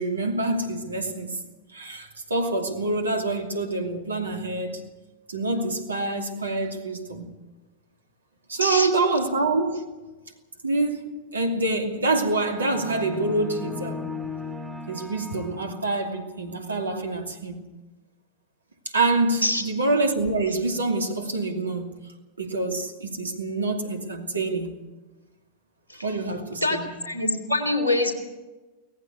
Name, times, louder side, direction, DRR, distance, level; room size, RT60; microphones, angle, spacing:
voice 1, 0.0-1.4 1.7-4.9 5.3-7.3 8.5-9.9 10.6-11.0 11.3-14.1 14.9-17.6 18.9-21.9 22.4-24.8 26.0-26.9 27.6-27.7, right 2 dB, 75° right, 2.6 m, -26 dB
sound 1, 12.2-16.2, left 3 dB, 5° right, 2.7 m, -37 dB
voice 2, 26.6-28.1, left 1 dB, 80° left, 3.8 m, -24 dB
18.5 x 15.0 x 9.6 m
figure-of-eight pair, 90°, 0 cm